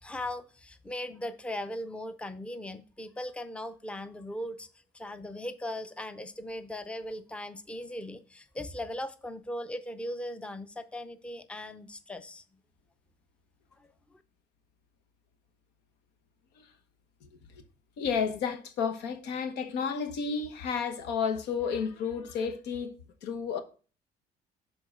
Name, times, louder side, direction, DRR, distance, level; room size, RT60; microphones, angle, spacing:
voice 1, 0.0-4.7 4.9-12.4 13.8-14.2, left 1 dB, 5° left, 0.6 m, -39 dB
voice 2, 18.0-22.9 23.2-23.6, left 6 dB, 90° left, 1.1 m, -31 dB
7.1 x 3.9 x 6.3 m
cardioid pair, 110°, 17 cm